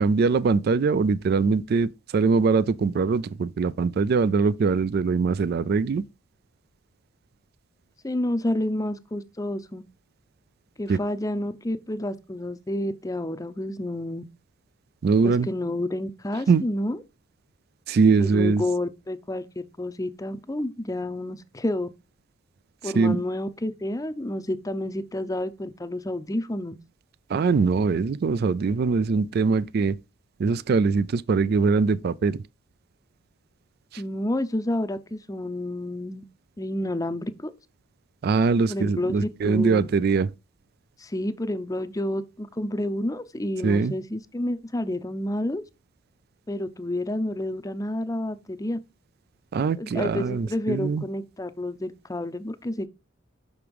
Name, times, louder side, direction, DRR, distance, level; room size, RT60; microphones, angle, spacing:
voice 1, 0.0-6.0 10.9-11.0 15.0-15.5 16.5-16.6 17.9-18.6 22.8-23.2 27.3-30.0 30.4-32.4 33.9-34.0 38.2-40.3 43.6-43.9 49.5-51.0, right 4 dB, 50° right, 0.3 m, -22 dB
voice 2, 8.0-9.8 10.8-14.2 15.2-17.0 18.2-21.9 22.8-26.8 34.0-36.2 36.6-37.5 38.7-39.9 41.0-45.6 46.5-48.8 49.8-52.9, left 1 dB, 15° left, 0.6 m, -29 dB
6.0 x 5.2 x 4.7 m
head